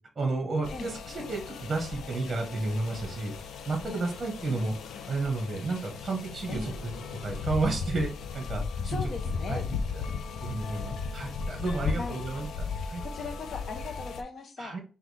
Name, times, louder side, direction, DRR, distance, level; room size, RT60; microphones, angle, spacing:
voice 1, 0.2-3.3 3.7-4.7 5.1-6.9 7.2-9.0 9.5-9.6 10.4-12.5 12.9-13.0 14.6-14.8, right 3 dB, 30° right, 3 dB, 1.0 m, -31 dB
sound 1, 0.6-14.2, left 5 dB, 85° left, 0.5 m, -36 dB
voice 2, 4.5-5.2 6.5-6.8 8.9-9.7 11.8-12.2 13.0-14.8, left 3 dB, 50° left, 5 dB, 0.8 m, -39 dB
5.7 x 2.3 x 3.2 m, 0.36 s
wide cardioid pair, 150°, 0 cm